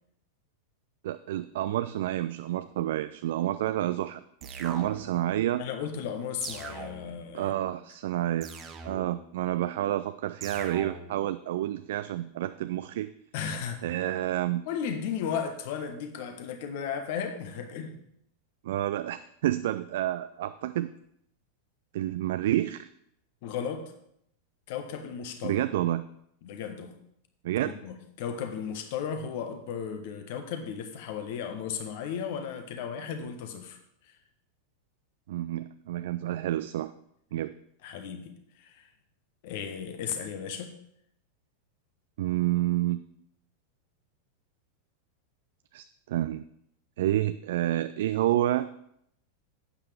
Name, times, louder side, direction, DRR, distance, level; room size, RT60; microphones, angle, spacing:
voice 1, 1.0-5.6 7.3-8.5 8.8-13.1 13.8-14.6 18.6-20.9 21.9-22.9 25.4-26.1 27.4-27.7 35.3-36.9 37.3-37.5 42.2-43.0 45.7-46.4 47.0-48.7, right 13 dB, 55° right, 12 dB, 0.3 m, -29 dB
sound 1, 4.4-5.3 6.4-7.3 8.4-9.3 10.4-11.3, right 4 dB, 25° right, 1.2 m, -41 dB
voice 2, 5.6-7.7 13.3-14.3 14.6-18.0 23.4-23.8 24.7-25.6 26.4-26.9 27.6-33.8 37.8-38.3 38.6-38.9 39.4-40.7, left 7 dB, 50° left, 7 dB, 1.4 m, -35 dB
12.0 x 8.7 x 3.4 m, 0.74 s
figure-of-eight pair, 90°, 0 cm